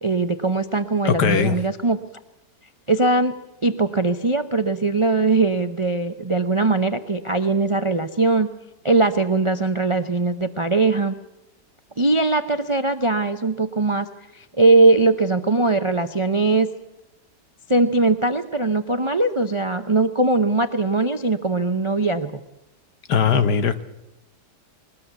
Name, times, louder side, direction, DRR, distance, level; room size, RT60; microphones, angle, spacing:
voice 1, 0.0-2.0 2.9-3.3 3.6-8.5 8.8-11.1 12.0-14.1 14.3-16.7 17.7-22.4, right 3 dB, 35° right, 9 dB, 0.4 m, -20 dB
voice 2, 1.1-1.6 23.1-23.8, left 6 dB, 70° left, 10 dB, 1.8 m, -19 dB
21.5 x 19.5 x 8.2 m, 0.92 s
omnidirectional pair, 1.8 m